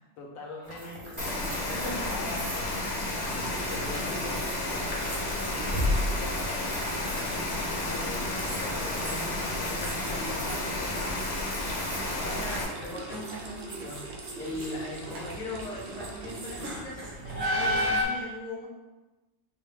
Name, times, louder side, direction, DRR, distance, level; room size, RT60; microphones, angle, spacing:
voice 1, 0.2-2.4 3.7-9.2 9.6-10.9, left 3 dB, 75° left, -1 dB, 1.1 m, -44 dB
sound 1, 0.7-18.0, equal, 85° right, 1.3 m, -36 dB
Rain, 1.2-12.6, left 2 dB, 55° left, 0.9 m, -32 dB
voice 2, 1.6-2.4 3.8-4.0 9.1-9.4 10.1-10.4 11.9-14.0 14.4-18.7, left 1 dB, 5° left, -5 dB, 0.5 m, -39 dB
sound 2, 3.0-16.8, right 3 dB, 60° right, 0.6 m, -43 dB
4.2 x 2.2 x 3.4 m, 1.1 s
omnidirectional pair, 1.5 m